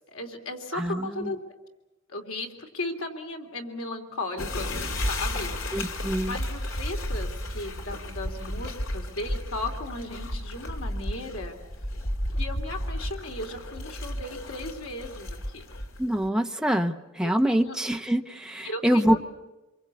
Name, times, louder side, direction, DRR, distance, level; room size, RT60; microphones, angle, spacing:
voice 1, 0.1-1.4 2.1-11.6 12.4-15.7 17.2-17.8 18.6-19.2, left 2 dB, 85° left, 3 dB, 3.2 m, -36 dB
voice 2, 0.7-1.3 5.7-6.4 16.0-19.2, right 1 dB, 5° right, 5 dB, 0.9 m, -25 dB
sound 1, 4.4-16.3, left 1 dB, 70° left, 2.7 m, -33 dB
26.0 x 23.0 x 8.5 m, 1.1 s
head